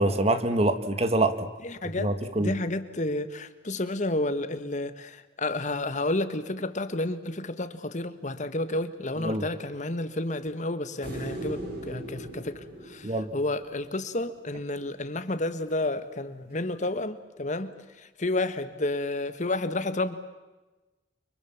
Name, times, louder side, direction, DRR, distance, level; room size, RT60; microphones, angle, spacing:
voice 1, 0.0-1.5 2.0-2.5 9.2-9.4 13.0-13.3, right 2 dB, 35° right, 10 dB, 1.7 m, -25 dB
voice 2, 1.6-2.1 2.4-20.2, left 2 dB, 45° left, 11 dB, 1.5 m, -31 dB
sound 1, 11.0-14.3 16.9-17.0, right 1 dB, 60° right, 7.7 m, -39 dB
30.0 x 24.5 x 7.3 m, 1.1 s
head